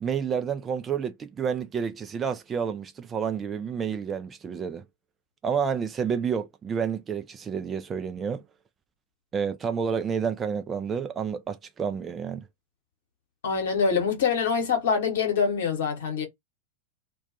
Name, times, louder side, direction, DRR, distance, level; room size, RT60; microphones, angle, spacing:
voice 1, 0.0-4.8 5.4-8.4 9.3-12.5, right 7 dB, 20° right, 0.4 m, -29 dB
voice 2, 13.4-16.3, left 6 dB, 60° left, 1.0 m, -25 dB
2.2 x 2.2 x 2.6 m
figure-of-eight pair, 90°, 0 cm